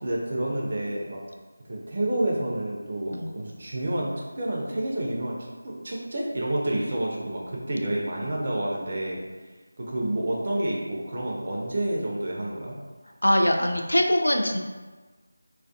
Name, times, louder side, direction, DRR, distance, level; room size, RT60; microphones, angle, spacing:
voice 1, 0.0-1.2 1.7-5.4 5.6-9.2 9.8-12.8, right 1 dB, 45° right, -3 dB, 0.4 m, -29 dB
voice 2, 13.2-14.6, left 1 dB, 90° left, 3 dB, 0.3 m, -22 dB
2.3 x 2.2 x 2.5 m, 1.3 s
figure-of-eight pair, 165°, 0 cm